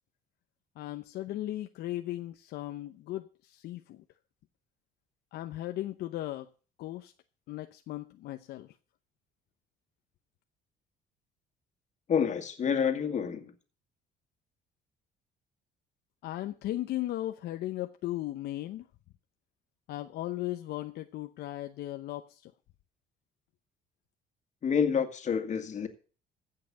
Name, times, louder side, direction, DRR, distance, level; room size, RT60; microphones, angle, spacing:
voice 1, 0.8-4.0 5.3-6.5 6.8-7.1 7.5-8.7 16.2-18.9 19.9-22.5, left 15 dB, 75° left, 0.8 m, -37 dB
voice 2, 12.1-13.5 24.6-25.9, left 7 dB, 45° left, 2.1 m, -28 dB
15.5 x 5.8 x 7.6 m
cardioid pair, 110°, 17 cm